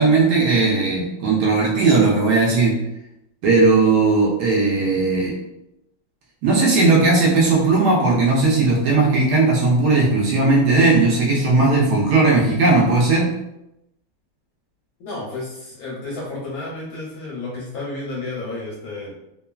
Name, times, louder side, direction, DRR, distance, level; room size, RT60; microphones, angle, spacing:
voice 1, 0.0-2.7 3.4-5.3 6.4-13.3, right 3 dB, 70° right, -2 dB, 1.0 m, -17 dB
voice 2, 15.0-19.1, left 2 dB, 70° left, -5 dB, 0.9 m, -31 dB
2.9 x 2.3 x 2.2 m, 0.86 s
omnidirectional pair, 2.0 m